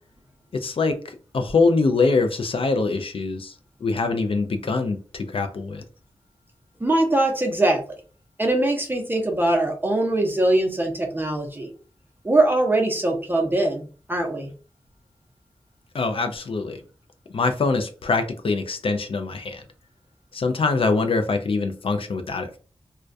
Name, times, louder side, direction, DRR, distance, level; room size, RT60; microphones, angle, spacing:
voice 1, 0.5-3.5 3.8-5.8 15.9-16.8 17.3-19.6 20.3-22.6, left 3 dB, 60° left, 0.4 m, -24 dB
voice 2, 6.8-7.8 8.4-11.7 12.2-14.5, right 2 dB, 20° right, 0.6 m, -22 dB
2.2 x 2.2 x 2.5 m
wide cardioid pair, 70°, 11 cm